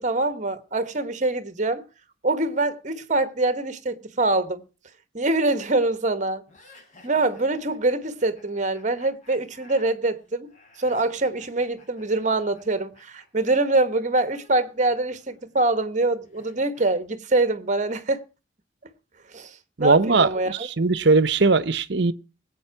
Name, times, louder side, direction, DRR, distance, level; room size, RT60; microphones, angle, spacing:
voice 1, 0.0-1.8 2.2-4.6 5.1-6.4 7.0-10.5 10.8-18.2 19.3-19.5 19.8-20.7, right 2 dB, 40° right, 1.2 m, -24 dB
sound 1, 6.5-13.3 13.5-16.9, left 3 dB, 35° left, 7.5 m, -55 dB
voice 2, 19.8-22.1, right 3 dB, 60° right, 0.8 m, -20 dB
19.0 x 8.5 x 5.8 m
head